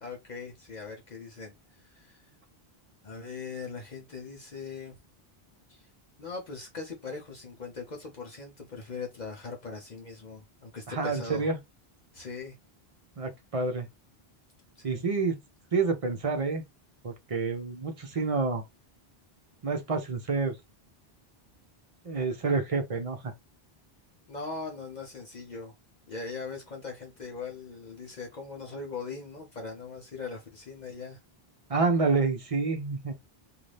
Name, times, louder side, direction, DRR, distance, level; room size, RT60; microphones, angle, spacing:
voice 1, 0.0-2.2 3.0-5.0 5.7-5.9 6.2-11.5 12.1-12.6 14.8-15.1 24.3-25.7 26.1-31.2, left 4 dB, 50° left, 0.8 m, -40 dB
voice 2, 10.9-11.6 13.2-13.9 14.8-15.4 15.7-16.6 17.0-18.6 19.6-20.5 22.0-23.3 31.7-33.1, right 4 dB, 40° right, 0.7 m, -28 dB
2.6 x 2.5 x 3.2 m
omnidirectional pair, 1.0 m